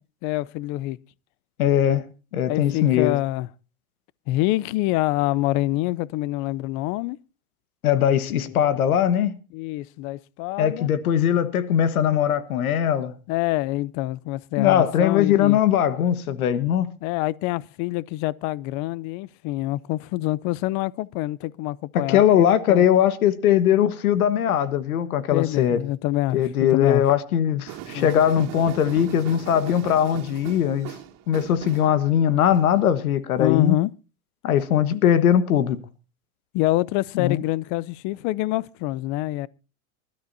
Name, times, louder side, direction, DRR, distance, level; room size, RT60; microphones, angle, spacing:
voice 1, 0.2-1.0 2.5-3.5 4.3-7.2 8.0-8.6 9.5-10.9 13.3-15.6 17.0-22.9 25.3-27.0 27.9-28.2 33.4-33.9 34.9-35.0 36.5-39.5, left 17 dB, 45° left, 0.6 m, -26 dB
voice 2, 1.6-2.0 2.3-3.2 7.8-9.3 10.6-13.2 14.6-16.9 21.9-25.8 26.3-30.9 31.3-33.8 34.4-35.8 37.1-37.4, left 10 dB, 90° left, 1.5 m, -20 dB
sound 1, 27.7-32.8, right 11 dB, 50° right, 2.6 m, -38 dB
25.0 x 12.5 x 2.7 m
supercardioid pair, 115°, 42 cm